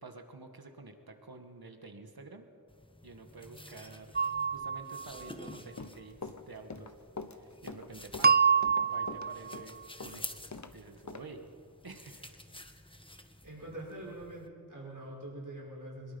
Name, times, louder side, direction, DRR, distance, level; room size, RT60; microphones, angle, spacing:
voice 1, 0.0-2.5 3.0-4.2 4.5-6.9 7.3-8.4 8.7-10.2 10.7-11.5 11.8-12.4, right 3 dB, 80° right, 5 dB, 2.1 m, -49 dB
sound 1, 2.7-14.5, left 1 dB, 15° left, 1.4 m, -50 dB
sound 2, 4.2-5.3 8.2-9.6, right 6 dB, 25° right, 0.4 m, -27 dB
Run, 5.6-10.7 11.1-11.2, left 4 dB, 50° left, 1.2 m, -44 dB
voice 2, 13.4-16.2, right 1 dB, 60° right, -5 dB, 6.2 m, -44 dB
23.0 x 21.0 x 5.5 m, 2.4 s
wide cardioid pair, 65°, 36 cm